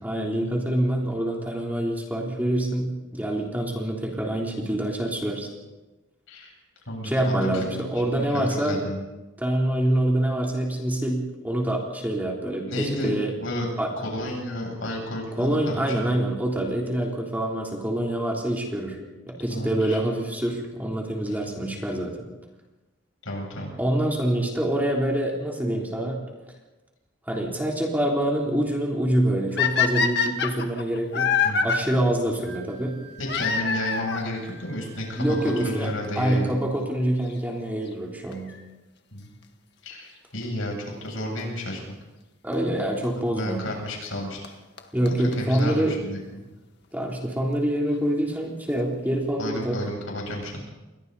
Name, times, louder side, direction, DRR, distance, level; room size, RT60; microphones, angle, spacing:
voice 1, 0.0-5.5 7.0-8.8 9.4-13.3 13.8-13.9 15.4-19.0 19.3-22.3 23.8-26.2 27.3-31.3 31.6-33.0 35.2-35.9 36.2-38.5 42.4-43.6 44.9-46.0 46.9-49.8, right 1 dB, 10° right, -1 dB, 3.4 m, -26 dB
voice 2, 6.9-7.7 8.0-9.0 12.7-13.1 13.4-13.7 14.0-16.0 19.5-20.0 21.3-21.4 23.2-23.7 31.4-31.7 33.2-36.5 39.1-39.3 39.8-41.8 43.2-44.4 45.1-46.2 49.4-50.5, left 1 dB, 75° left, 0 dB, 8.0 m, -32 dB
sound 1, 29.6-31.8 33.3-34.3 35.3-35.4 36.0-36.1 36.3-36.4 38.3-38.6 41.4-41.5 42.5-42.6 44.1-44.2 44.4-44.5 44.8-44.9 45.1-45.2 45.3-45.4 45.6-45.7 45.9-46.0, left 6 dB, 55° left, 1.8 m, -24 dB
Wind instrument woodwind instrument, 32.4-36.1, right 2 dB, 85° right, 7.3 m, -48 dB
30.0 x 22.5 x 4.1 m, 1.1 s
head